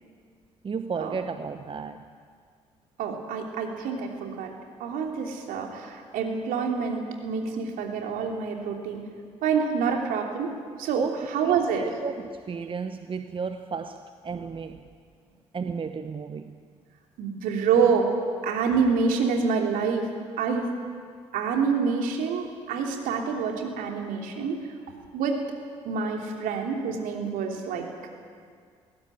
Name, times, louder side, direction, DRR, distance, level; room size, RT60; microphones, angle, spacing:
voice 1, 0.6-2.1 11.0-14.8 15.5-16.5, right 5 dB, 35° right, 9 dB, 1.1 m, -33 dB
voice 2, 3.0-4.5 4.8-9.0 9.4-10.5 10.8-11.0 11.3-11.9 17.2-18.1 18.4-20.1 20.4-20.7 21.3-24.7 25.1-25.4 25.8-27.9, right 5 dB, 65° right, 2 dB, 3.2 m, -27 dB
20.5 x 17.0 x 9.8 m, 2.1 s
figure-of-eight pair, 45°, 15 cm